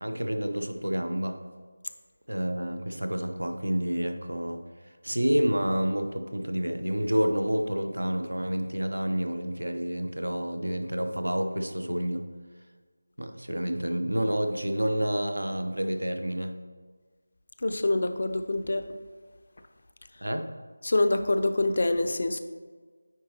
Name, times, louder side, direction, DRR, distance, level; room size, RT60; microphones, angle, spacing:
voice 1, 0.0-1.4 2.3-4.6 5.0-12.2 13.2-16.6 20.2-20.5, equal, 90° right, 7 dB, 0.7 m, -29 dB
voice 2, 17.6-18.8 20.8-22.4, left 2 dB, 55° left, 9 dB, 0.5 m, -25 dB
9.2 x 5.1 x 2.9 m, 1.5 s
figure-of-eight pair, 165°, 0 cm